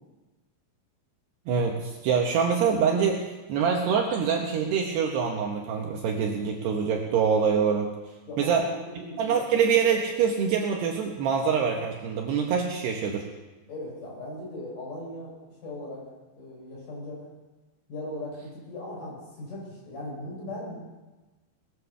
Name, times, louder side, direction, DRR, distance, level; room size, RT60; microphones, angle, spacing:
voice 1, 1.5-7.9 8.4-8.6 9.2-13.3, right 6 dB, 70° right, 1 dB, 2.9 m, -25 dB
voice 2, 8.3-9.5 13.7-16.1 16.4-17.3 17.9-20.8, left 1 dB, 40° left, -4 dB, 7.0 m, -38 dB
20.0 x 9.7 x 6.9 m, 1.2 s
omnidirectional pair, 5.6 m